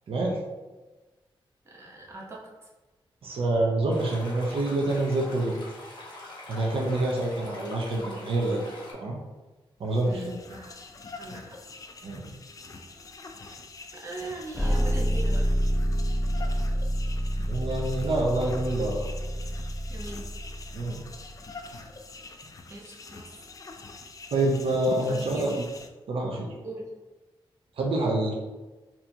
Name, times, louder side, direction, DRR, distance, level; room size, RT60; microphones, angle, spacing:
voice 1, 0.1-0.4 3.2-5.5 6.5-8.6 8.9-9.2 9.8-10.2 12.0-12.3 17.5-19.1 20.7-21.0 24.3-25.6 26.1-26.5 27.8-28.3, right 2 dB, 80° right, -1 dB, 0.6 m, -27 dB
voice 2, 1.6-2.7 10.0-10.8 11.2-11.6 13.9-15.5 19.9-20.3 22.7-23.3 25.1-25.6 26.6-26.9, right 2 dB, 30° right, -3 dB, 0.9 m, -40 dB
sound 1, 3.9-8.9, left 1 dB, 55° left, 1.0 m, -43 dB
sound 2, 9.8-25.9, left 3 dB, 40° left, 0.4 m, -45 dB
sound 3, 14.5-21.5, equal, 5° right, 0.7 m, -28 dB
4.3 x 2.8 x 2.7 m, 1.2 s
wide cardioid pair, 115°, 9 cm